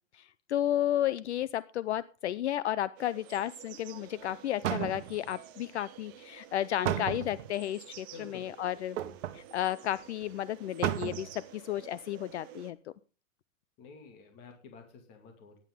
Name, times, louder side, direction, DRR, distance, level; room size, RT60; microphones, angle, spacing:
voice 1, 0.1-9.0 9.3-12.8, left 12 dB, 55° left, 18 dB, 0.6 m, -33 dB
sound 1, 3.0-12.7, right 12 dB, 15° right, 0.6 m, -51 dB
sound 2, 4.3-4.4 4.6-5.3 6.8-7.5 9.0-9.4 9.9-10.0 10.2-10.3 10.8-11.3 11.8-11.9, right 11 dB, 60° right, 1.4 m, -33 dB
voice 2, 8.1-8.5 13.8-15.6, left 4 dB, 25° left, 4 dB, 2.3 m, -50 dB
16.0 x 10.5 x 3.7 m, 0.36 s
supercardioid pair, 170°, 41 cm